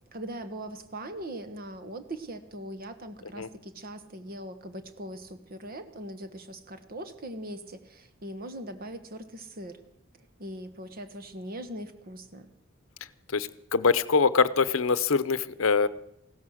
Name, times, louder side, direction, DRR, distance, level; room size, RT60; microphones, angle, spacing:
voice 1, 0.1-9.8 10.2-12.5, right 1 dB, 45° right, 9 dB, 1.3 m, -40 dB
voice 2, 13.3-15.9, left 5 dB, 70° left, 15 dB, 0.7 m, -24 dB
16.0 x 13.5 x 6.4 m, 0.75 s
head